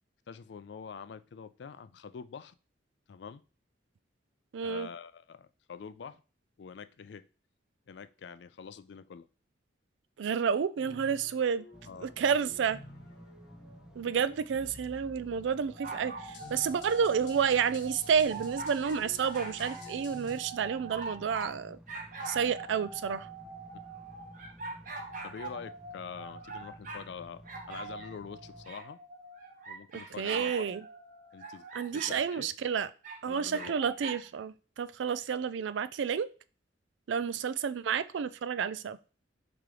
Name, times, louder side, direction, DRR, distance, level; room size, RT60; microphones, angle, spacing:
voice 1, 0.3-2.6 3.1-3.4 4.6-6.2 6.6-7.3 7.9-9.3 11.8-12.1 22.4-22.5 23.7-23.8 25.2-29.0 29.7-30.7 31.3-31.6 31.9-32.5 33.3-33.8, left 6 dB, 70° left, 0.4 m, -45 dB
voice 2, 4.5-4.9 10.2-11.7 12.0-12.8 14.0-21.8 22.3-23.3 29.9-30.8 31.7-32.9 33.2-36.3 37.1-39.0, right 7 dB, 80° right, 0.3 m, -30 dB
sound 1, 10.8-20.4, left 2 dB, 85° left, 1.1 m, -52 dB
sound 2, 11.7-28.7, equal, 5° right, 0.3 m, -53 dB
sound 3, 15.7-21.6 21.9-27.1 27.4-32.2 33.0-34.2, right 3 dB, 45° right, 0.8 m, -43 dB
4.8 x 2.9 x 3.7 m
head